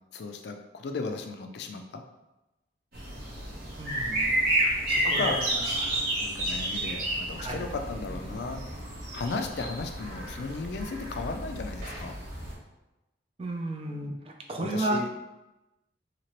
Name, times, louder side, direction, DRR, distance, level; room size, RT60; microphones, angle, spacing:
voice 1, 0.1-2.0 4.9-5.4 6.2-8.6 9.1-12.1 14.6-15.1, left 3 dB, 60° left, 5 dB, 0.3 m, -35 dB
sound 1, 2.9-12.5, right 1 dB, 50° right, 0.9 m, -31 dB
voice 2, 3.8-4.3 5.0-6.0 7.4-7.6 13.4-15.0, right 1 dB, 30° right, 2 dB, 0.3 m, -33 dB
2.9 x 2.8 x 2.9 m, 0.99 s
head